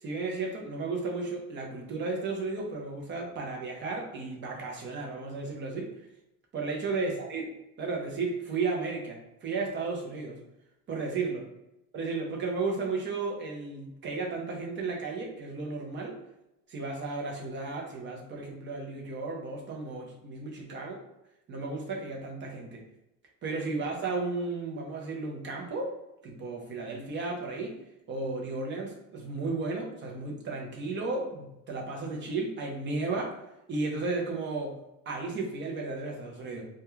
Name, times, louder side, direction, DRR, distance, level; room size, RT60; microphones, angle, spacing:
voice 1, 0.0-6.1 6.5-7.5 7.8-10.4 10.9-11.4 11.9-16.2 16.7-21.0 21.5-22.8 23.4-27.8 28.1-33.3 33.7-34.8 35.1-36.6, right 3 dB, 30° right, 0 dB, 0.5 m, -34 dB
2.3 x 2.1 x 3.0 m, 0.89 s
cardioid pair, 145°, 42 cm